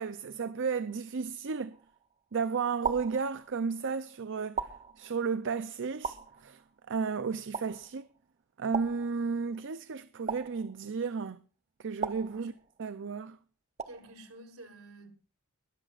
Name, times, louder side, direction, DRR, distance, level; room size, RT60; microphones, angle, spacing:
voice 1, 0.0-1.8 2.3-4.7 5.0-6.6 6.9-8.0 8.6-11.4 11.8-12.5 12.8-13.4, right 5 dB, 60° right, 0.6 m, -33 dB
sound 1, 1.7-2.2 2.8-3.8 4.6-5.4 6.0-6.9 7.5-8.2 8.7-9.6 10.3-11.2 12.0-13.0 13.8-14.4, right 6 dB, 30° right, 0.9 m, -39 dB
voice 2, 13.9-15.1, right 2 dB, 75° right, 3.6 m, -50 dB
21.0 x 14.0 x 2.5 m
head